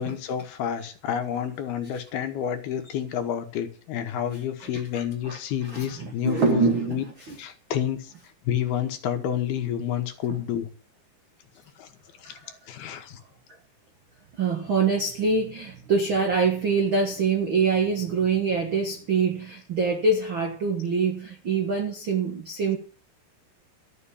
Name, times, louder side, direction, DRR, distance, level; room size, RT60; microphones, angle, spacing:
voice 1, 0.0-7.0 7.4-8.1 8.4-10.7 11.8-11.9 12.2-12.3 12.7-13.2, left 9 dB, 70° left, 3.1 m, -29 dB
voice 2, 4.6-7.4 10.3-10.4 12.2-12.6 14.4-22.8, right 4 dB, 65° right, 1.2 m, -25 dB
13.0 x 6.5 x 9.8 m
omnidirectional pair, 4.9 m